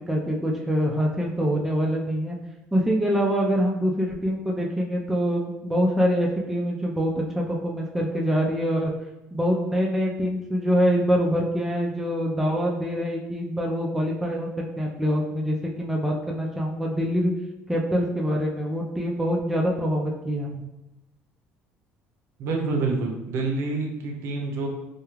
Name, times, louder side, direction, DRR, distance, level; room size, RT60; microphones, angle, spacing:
voice 1, 0.1-2.4 2.7-8.9 9.3-14.5 14.8-17.3 17.7-20.6, equal, 5° right, -2 dB, 0.3 m, -25 dB
voice 2, 22.4-24.7, right 3 dB, 65° right, 1 dB, 0.6 m, -27 dB
2.3 x 2.2 x 3.1 m, 0.95 s
cardioid pair, 120°, 5 cm